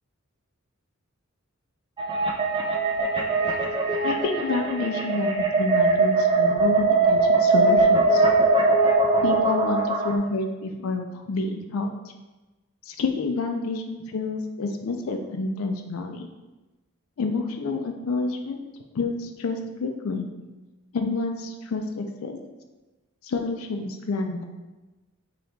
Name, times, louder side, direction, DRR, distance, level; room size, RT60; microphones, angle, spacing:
sound 1, 2.0-10.2, right 3 dB, 20° right, 0.3 m, -21 dB
voice 1, 4.0-8.2 9.2-11.9 12.9-16.3 17.2-18.6 18.9-20.3 20.9-22.4 23.2-24.4, left 3 dB, 75° left, 4 dB, 0.4 m, -28 dB
4.0 x 2.8 x 3.3 m, 1.1 s
head